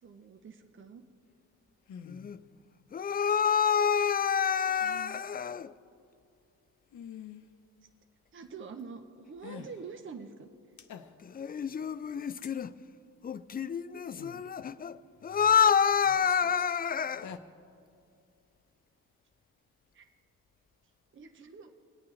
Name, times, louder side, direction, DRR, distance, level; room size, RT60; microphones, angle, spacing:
voice 1, 0.0-1.0 8.3-10.5 19.9-20.0 21.1-21.7, right 5 dB, 35° right, 0.8 m, -45 dB
sound 1, 1.9-2.3 4.7-5.2 6.9-7.5 9.4-9.8 10.8-11.4 12.4-12.5 14.2-14.4 15.2-15.6 16.0-16.8 17.1-17.4, left 8 dB, 55° left, 0.7 m, -47 dB
voice 2, 2.1-2.4 2.9-5.7 11.2-12.8 13.2-17.3, left 7 dB, 25° left, 0.4 m, -28 dB
24.0 x 8.5 x 3.2 m
cardioid pair, 80°, 34 cm